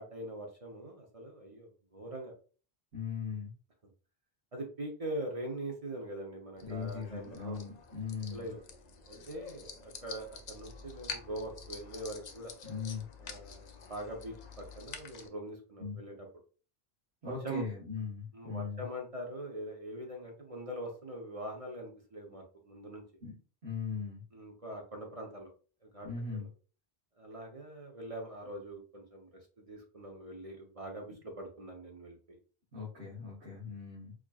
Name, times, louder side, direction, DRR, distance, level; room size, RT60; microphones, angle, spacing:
voice 1, 0.0-2.3 4.5-7.7 8.3-8.6 9.1-12.8 13.2-16.1 17.2-17.6 18.3-23.0 24.3-25.5 25.8-26.5 27.2-32.4, right 1 dB, 40° right, 1 dB, 0.8 m, -43 dB
voice 2, 2.9-3.5 6.6-8.5 12.6-13.0 15.8-16.0 17.2-18.8 23.2-23.3 23.6-24.2 26.0-26.5 32.7-34.1, left 5 dB, 80° right, -6 dB, 1.6 m, -39 dB
sound 1, 6.6-15.3, left 5 dB, 50° left, 0.6 m, -48 dB
4.8 x 2.8 x 2.3 m, 0.38 s
omnidirectional pair, 1.1 m